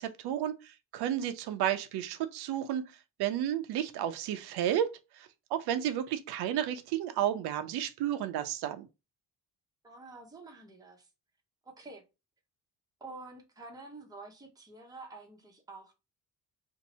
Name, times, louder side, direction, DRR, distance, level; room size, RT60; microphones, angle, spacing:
voice 1, 0.0-2.9 3.2-4.9 5.1-8.9, right 10 dB, 90° right, 0.6 m, -32 dB
voice 2, 9.8-11.1 11.6-12.0 13.0-15.9, right 3 dB, 10° right, 0.8 m, -48 dB
2.7 x 2.6 x 4.1 m
cardioid pair, 145°, 38 cm